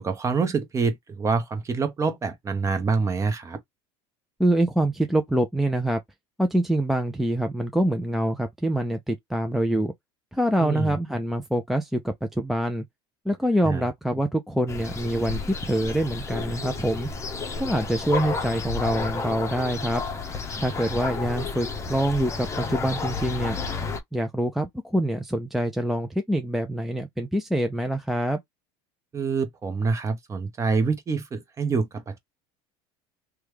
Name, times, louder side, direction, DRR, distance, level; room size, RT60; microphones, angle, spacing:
voice 1, 0.0-3.6 10.6-11.0 13.6-13.8 29.1-32.2, right 4 dB, 20° right, 0.9 m, -26 dB
voice 2, 4.4-6.0 6.4-9.9 10.3-12.8 13.3-17.1 17.6-20.0 20.6-23.6 24.1-28.4, right 1 dB, ahead, 0.4 m, -25 dB
sound 1, 14.7-24.0, left 4 dB, 20° left, 0.7 m, -31 dB
3.0 x 2.3 x 3.3 m
supercardioid pair, 125°, 13 cm